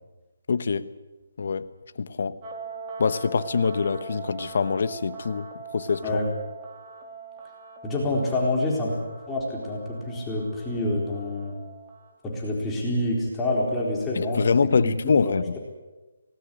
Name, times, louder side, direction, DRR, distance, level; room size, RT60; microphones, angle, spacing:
voice 1, 0.5-0.9 1.4-1.7 2.0-2.3 3.0-5.5 5.7-6.0 14.2-15.6, left 5 dB, 55° left, 13 dB, 1.1 m, -24 dB
sound 1, 2.4-12.1, right 4 dB, 20° right, 3.3 m, -41 dB
voice 2, 7.8-9.0 9.3-11.5 12.2-14.4 14.8-15.6, left 1 dB, 10° left, -3 dB, 4.1 m, -27 dB
18.5 x 18.5 x 10.0 m, 1.2 s
hypercardioid pair, 165°, 0 cm